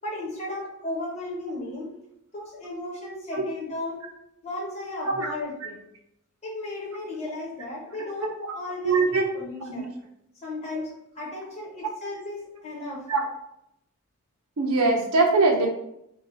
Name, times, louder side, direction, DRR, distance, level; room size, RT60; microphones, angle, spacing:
voice 1, 0.0-1.9 2.3-4.0 4.4-5.8 6.4-9.9 10.4-13.1, left 2 dB, 30° left, -4 dB, 1.0 m, -35 dB
voice 2, 8.8-9.2 9.7-9.8 13.1-13.2 14.6-15.7, right 3 dB, 75° right, 2 dB, 0.7 m, -21 dB
3.1 x 2.3 x 3.9 m, 0.78 s
head